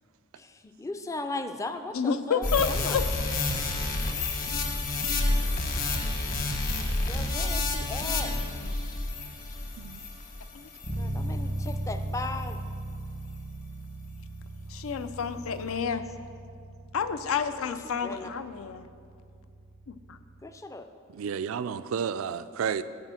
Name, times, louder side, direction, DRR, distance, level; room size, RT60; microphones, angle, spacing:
voice 1, 0.4-3.0 7.1-8.4 11.0-12.6 18.0-18.3 20.4-20.9, left 2 dB, 15° left, 8 dB, 0.4 m, -37 dB
voice 2, 1.9-3.0 6.3-6.4 8.4-8.7 10.5-10.7 14.7-16.0 16.9-18.9 19.9-20.2, left 6 dB, 80° left, 11 dB, 0.5 m, -30 dB
sound 1, 2.4-11.1 11.6-11.7, left 2 dB, 45° left, 1.1 m, -29 dB
Bass guitar, 10.8-20.5, right 1 dB, 60° left, 1.9 m, -38 dB
voice 3, 21.1-22.8, right 7 dB, 75° right, 13 dB, 0.3 m, -31 dB
10.5 x 4.3 x 7.5 m, 2.3 s
head